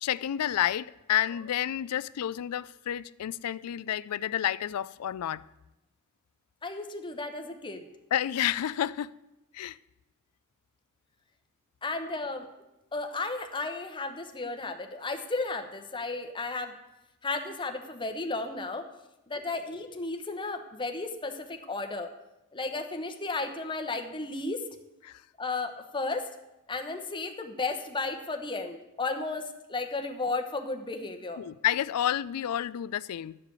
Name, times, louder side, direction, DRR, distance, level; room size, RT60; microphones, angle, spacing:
voice 1, 0.0-5.4 8.1-9.2 9.5-9.8 25.0-25.2 31.4-33.4, left 11 dB, 85° left, 0.4 m, -30 dB
voice 2, 6.6-7.9 11.8-12.5 12.9-16.7 17.2-18.8 19.3-22.1 22.5-24.7 25.4-26.2 26.7-31.4, left 3 dB, 20° left, 0.9 m, -34 dB
11.5 x 4.9 x 8.1 m
head